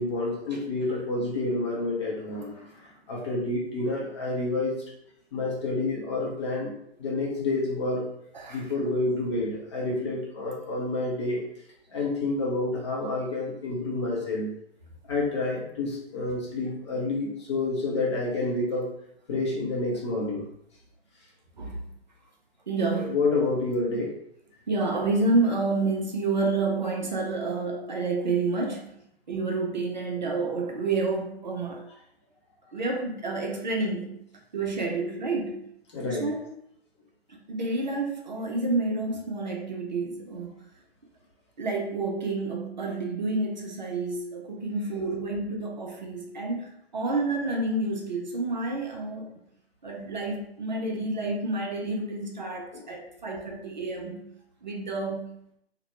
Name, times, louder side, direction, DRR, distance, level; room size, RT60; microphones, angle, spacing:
voice 1, 0.0-4.8 5.3-6.7 7.0-8.0 8.5-11.4 11.9-14.5 15.1-18.9 19.3-20.5 22.9-24.1 35.9-36.3 52.7-52.8, left 2 dB, 25° left, -4 dB, 0.6 m, -29 dB
voice 2, 22.7-23.2 24.7-28.9 29.3-31.8 32.7-34.2 34.5-35.6 36.0-36.5 37.3-40.5 41.6-46.7 46.9-49.3 49.8-54.2 54.6-55.3, right 3 dB, 45° right, 1 dB, 0.5 m, -29 dB
2.8 x 2.1 x 3.0 m, 0.72 s
figure-of-eight pair, 130°, 32 cm